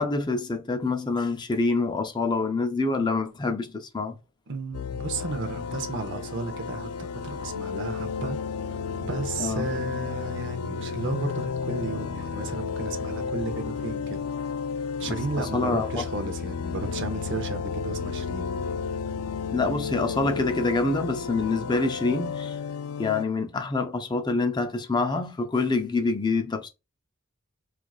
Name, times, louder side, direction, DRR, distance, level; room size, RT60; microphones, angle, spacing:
voice 1, 0.0-4.1 9.4-9.7 15.0-15.2 15.5-16.0 19.5-22.6 23.0-26.7, left 3 dB, 20° left, 0.4 m, -26 dB
voice 2, 4.5-8.4 8.7-14.2 15.0-18.6, right 3 dB, 60° right, 0.7 m, -34 dB
sound 1, 4.7-23.3, left 5 dB, 85° left, 0.3 m, -32 dB
4.5 x 2.4 x 2.3 m
head